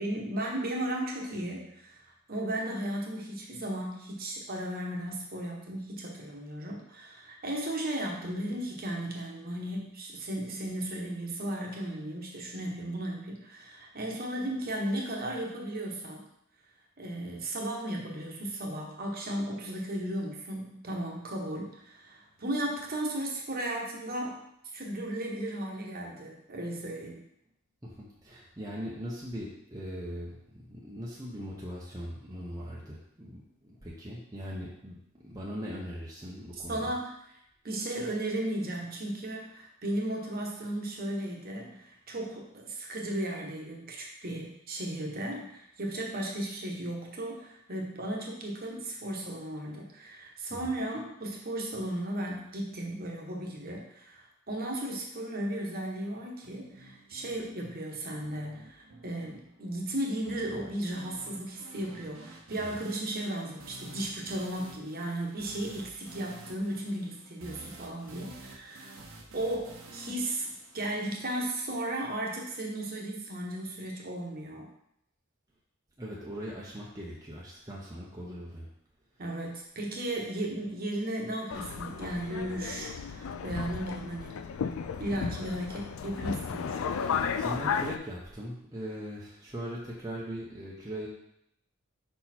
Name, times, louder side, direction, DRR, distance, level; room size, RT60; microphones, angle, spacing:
voice 1, 0.0-16.2 17.0-24.5 24.7-27.2 36.5-37.4 37.6-69.0 69.3-70.5 70.7-74.7 79.2-84.4 85.0-86.8, right 1 dB, 40° right, -1 dB, 1.1 m, -35 dB
voice 2, 27.8-35.0 35.2-36.9 50.5-50.7 62.5-62.7 76.0-78.7 87.0-91.1, equal, 15° right, -5 dB, 0.8 m, -40 dB
sound 1, 56.4-71.4, right 2 dB, 65° right, 0.9 m, -51 dB
Subway metro underground, 81.5-88.0, left 6 dB, 70° left, 0.3 m, -34 dB
5.5 x 4.2 x 4.3 m, 0.76 s
head